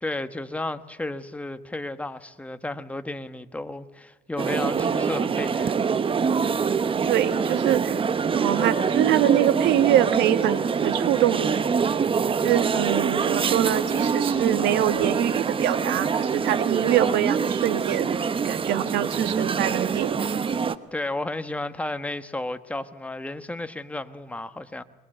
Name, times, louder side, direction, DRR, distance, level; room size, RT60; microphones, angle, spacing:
voice 1, 0.0-5.9 20.9-24.8, left 2 dB, 10° left, 1.2 m, -33 dB
sound 1, 4.4-20.7, right 6 dB, 30° right, 0.9 m, -25 dB
voice 2, 7.0-8.0 8.4-11.7 12.4-20.6, right 12 dB, 90° right, 1.9 m, -24 dB
22.0 x 21.0 x 7.8 m
cardioid pair, 110°, 17 cm